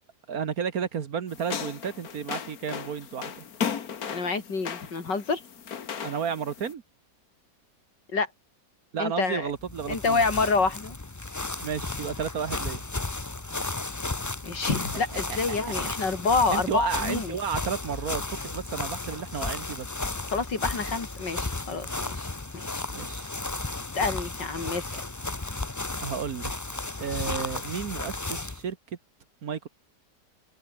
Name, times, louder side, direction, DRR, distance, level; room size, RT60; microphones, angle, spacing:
voice 1, 0.3-3.5 6.0-6.8 8.9-10.2 11.6-12.8 15.3-15.9 16.5-19.9 22.9-23.3 24.6-24.7 26.0-26.5 27.0-28.8 29.4-29.7, right 7 dB, 55° right, 1.7 m, -32 dB
sound 1, 1.3-6.7, left 7 dB, 55° left, 1.9 m, -36 dB
voice 2, 4.0-5.4 8.1-8.3 9.0-9.5 9.9-11.0 14.4-17.4 20.3-22.3 22.7-22.8 23.9-25.0, left 4 dB, 75° left, 4.1 m, -27 dB
sound 2, 9.6-28.6, left 2 dB, 20° left, 0.5 m, -34 dB
omnidirectional pair, 1.9 m